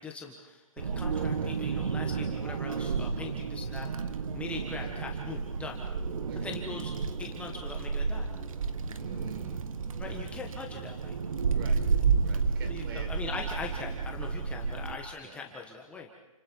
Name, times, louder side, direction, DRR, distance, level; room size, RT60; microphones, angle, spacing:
voice 1, 0.0-3.9 4.3-5.8 6.3-6.9 7.2-8.3 10.0-11.2 12.7-16.1, left 4 dB, 5° left, 1 dB, 1.5 m, -41 dB
Wind, 0.8-15.0, right 5 dB, 70° right, 1.6 m, -31 dB
voice 2, 3.2-3.5 4.7-5.0 6.3-6.6 9.0-10.3 11.5-11.8 12.2-13.3 15.2-15.5, right 5 dB, 40° right, 5 dB, 4.4 m, -48 dB
30.0 x 28.5 x 4.7 m, 1.1 s
hypercardioid pair, 155°, 18 cm